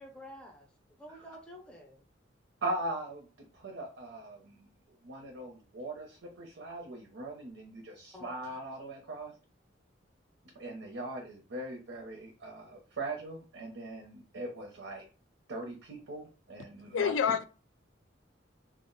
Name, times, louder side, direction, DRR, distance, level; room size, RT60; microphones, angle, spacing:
voice 1, 0.0-2.0 8.1-8.3, equal, 5° left, 0.5 m, -50 dB
voice 2, 2.6-4.7 5.0-9.3 10.5-15.1 15.5-17.1, right 2 dB, 80° right, 0.6 m, -40 dB
voice 3, 16.9-17.4, left 7 dB, 85° left, 0.3 m, -27 dB
2.3 x 2.1 x 3.7 m
head